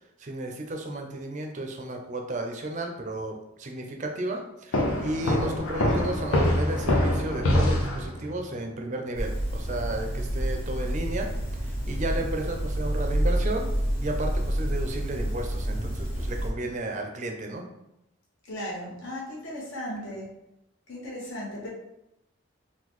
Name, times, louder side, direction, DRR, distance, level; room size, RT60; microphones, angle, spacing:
voice 1, 0.2-11.3 11.6-13.7 14.0-17.6, right 1 dB, 35° right, 3 dB, 0.4 m, -33 dB
sound 1, 4.7-8.4, left 1 dB, 85° left, 0.6 m, -24 dB
sound 2, 9.1-16.5, equal, 30° left, 1.0 m, -28 dB
voice 2, 18.5-20.3 20.9-21.7, equal, 65° left, -5 dB, 1.2 m, -36 dB
3.7 x 2.3 x 3.0 m, 0.86 s
head